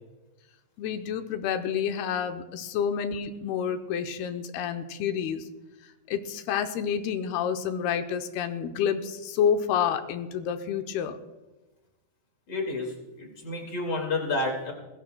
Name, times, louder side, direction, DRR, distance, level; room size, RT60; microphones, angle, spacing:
voice 1, 0.8-5.5 5.8-11.2, left 8 dB, 80° left, 7 dB, 2.6 m, -29 dB
voice 2, 12.5-14.7, left 2 dB, 35° left, 1 dB, 2.1 m, -30 dB
23.5 x 16.0 x 2.3 m, 1.1 s
omnidirectional pair, 4.7 m